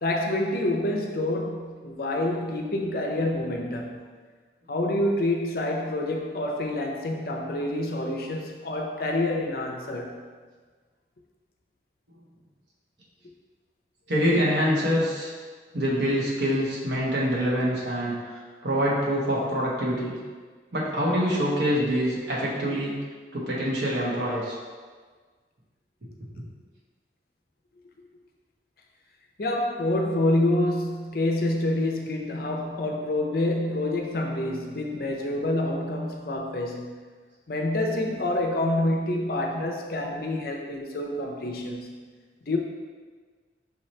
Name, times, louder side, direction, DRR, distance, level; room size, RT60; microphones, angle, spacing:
voice 1, 0.0-4.0 4.7-10.2 29.4-37.0 37.5-42.0 42.4-42.6, left 1 dB, 55° left, 2 dB, 0.5 m, -27 dB
voice 2, 14.1-15.3 15.7-20.2 20.7-23.0 23.3-24.6 26.4-26.5, equal, 85° right, -5 dB, 1.2 m, -25 dB
5.6 x 2.9 x 3.2 m, 1.5 s
head